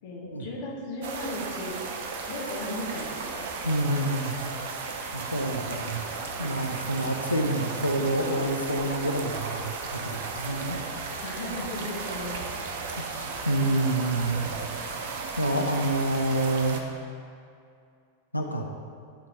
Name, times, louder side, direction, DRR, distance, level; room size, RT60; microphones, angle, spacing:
voice 1, 0.0-1.8 2.3-4.2 11.2-12.4 14.0-15.0, left 2 dB, 55° left, -4 dB, 1.3 m, -37 dB
sound 1, 1.0-16.8, right 4 dB, 55° right, 0.6 m, -35 dB
voice 2, 3.6-4.3 5.1-6.0 6.4-10.8 13.0-14.5 15.4-16.8 18.3-18.6, right 1 dB, 85° left, 2 dB, 0.6 m, -28 dB
11.0 x 3.8 x 3.7 m, 2.4 s
figure-of-eight pair, 90°, 0 cm